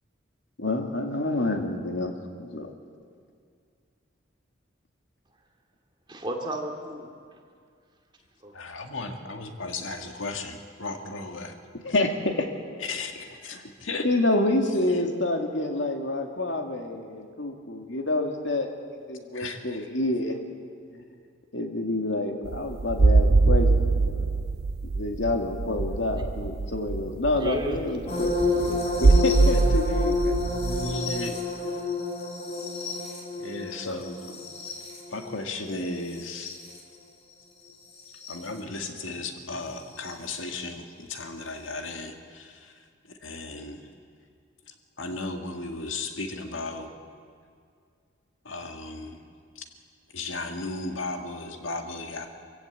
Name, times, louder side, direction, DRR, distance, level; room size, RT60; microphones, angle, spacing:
voice 1, 0.6-2.7 11.8-12.5 13.5-13.6 14.0-18.7 19.1-20.4 21.5-24.4 24.8-30.3 31.8-32.0, left 2 dB, 70° left, 3 dB, 2.3 m, -28 dB
voice 2, 6.1-7.4 8.4-8.5 27.4-28.6, right 1 dB, 25° right, 1 dB, 2.4 m, -34 dB
voice 3, 8.5-11.6 12.8-14.1 19.3-19.8 29.5-29.6 30.4-31.4 33.4-34.2 35.1-36.6 38.3-43.9 44.7-46.9 48.4-49.2 49.6-49.7 50.1-52.3, left 3 dB, 90° left, 5 dB, 1.9 m, -35 dB
sound 1, 22.5-31.0, right 3 dB, 50° right, 0.5 m, -23 dB
sound 2, 28.1-36.8 38.1-38.3 40.0-40.1, left 3 dB, 35° left, 3.5 m, -30 dB
25.0 x 16.0 x 8.5 m, 2.2 s
head